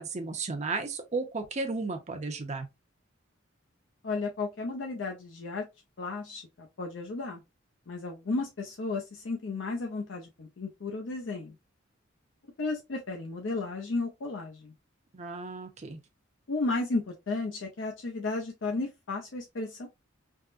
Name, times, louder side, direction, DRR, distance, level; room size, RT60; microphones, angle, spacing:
voice 1, 0.0-2.7 15.1-16.0, right 3 dB, 35° right, 0.6 m, -34 dB
voice 2, 4.0-5.7 6.0-7.4 7.9-11.6 12.6-14.7 16.5-19.9, left 3 dB, 65° left, 0.5 m, -33 dB
3.5 x 2.1 x 2.5 m
head